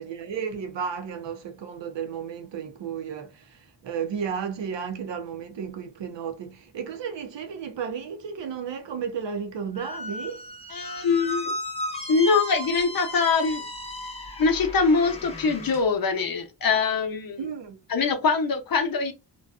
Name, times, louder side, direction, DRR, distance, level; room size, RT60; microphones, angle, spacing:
voice 1, 0.0-10.4 17.4-17.8, right 7 dB, 75° right, 0.7 m, -33 dB
Squeak, 9.7-15.8, left 1 dB, 15° left, 0.7 m, -35 dB
voice 2, 10.7-11.5 12.1-13.6 14.4-17.4 17.9-19.1, left 4 dB, 50° left, 0.7 m, -23 dB
2.5 x 2.2 x 2.3 m
wide cardioid pair, 95°, 44 cm